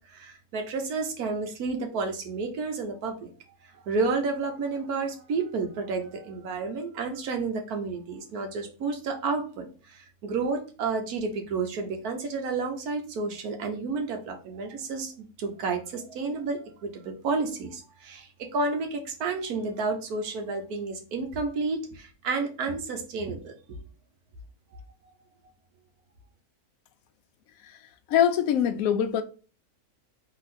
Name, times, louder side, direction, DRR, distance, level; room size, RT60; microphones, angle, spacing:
voice 1, 0.1-3.3 3.9-23.8, right 4 dB, 85° right, 1.4 m, -31 dB
voice 2, 28.1-29.2, left 9 dB, 70° left, 1.0 m, -23 dB
3.9 x 3.0 x 4.1 m
omnidirectional pair, 1.6 m